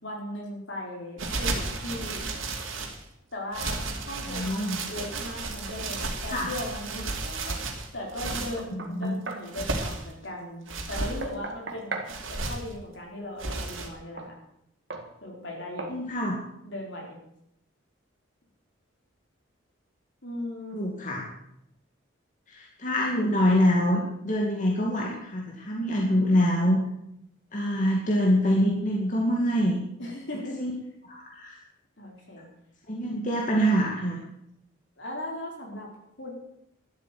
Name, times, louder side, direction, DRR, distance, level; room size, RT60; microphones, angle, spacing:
voice 1, 0.0-2.2 3.3-3.8 4.0-7.6 7.9-12.0 12.3-14.4 15.2-15.9 16.6-17.2 20.2-20.8 30.0-30.6 32.0-32.5 35.0-35.9 36.2-36.3, left 1 dB, 60° left, -1 dB, 4.7 m, -38 dB
sound 1, 1.2-3.0 3.5-8.6 9.3-10.1 10.7-11.2 12.1-12.7 13.4-13.9, right 3 dB, 80° right, 2.8 m, -33 dB
voice 2, 4.3-4.8 6.3-6.5 8.9-9.2 15.9-16.4 20.7-21.2 22.5-26.8 27.5-29.8 30.6-30.7 31.1-31.6 32.9-34.2, equal, 40° left, -1 dB, 2.3 m, -25 dB
Knock, 8.3-9.5 11.0-12.1 14.2-14.3 14.9-15.1 15.8-16.0, right 3 dB, 55° right, 1.9 m, -37 dB
12.5 x 8.4 x 9.4 m, 0.78 s
head